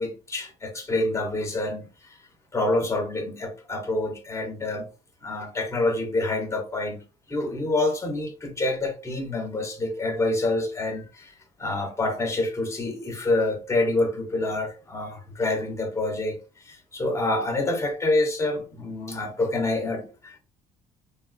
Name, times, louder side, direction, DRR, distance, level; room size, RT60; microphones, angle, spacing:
voice 1, 0.0-2.2 2.5-4.9 5.2-11.3 11.6-20.4, left 2 dB, 15° left, 0.7 m, -27 dB
3.4 x 2.3 x 2.3 m
cardioid pair, 110°, 17 cm